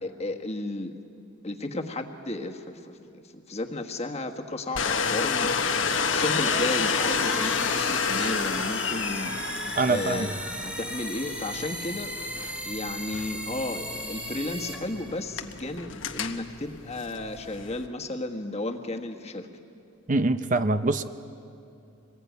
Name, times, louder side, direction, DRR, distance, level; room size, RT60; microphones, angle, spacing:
voice 1, 0.0-0.9 1.4-9.4 9.8-12.1 12.6-19.5, left 2 dB, 30° left, 4 dB, 1.5 m, -33 dB
Domestic sounds home sounds, 4.7-17.9, left 5 dB, 65° left, 1.2 m, -30 dB
sound 1, 5.8-15.5, equal, 5° right, 1.5 m, -36 dB
voice 2, 9.8-10.3 20.1-21.0, right 3 dB, 40° right, 10 dB, 0.7 m, -24 dB
25.5 x 20.5 x 9.4 m, 2.6 s
head